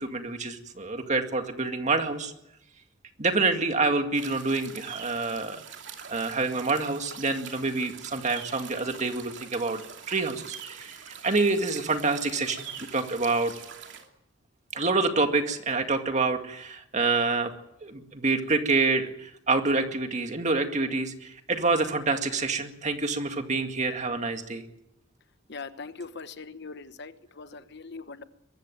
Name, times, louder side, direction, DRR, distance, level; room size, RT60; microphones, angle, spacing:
voice 1, 0.0-2.3 3.2-5.6 6.1-12.7 12.9-13.5 14.7-17.5 17.8-24.6, right 3 dB, 35° right, 6 dB, 2.1 m, -27 dB
sound 1, 4.1-14.1, right 7 dB, 65° right, 2.8 m, -44 dB
voice 2, 25.5-28.2, left 4 dB, 60° left, 11 dB, 1.1 m, -41 dB
22.5 x 14.5 x 9.2 m, 0.82 s
head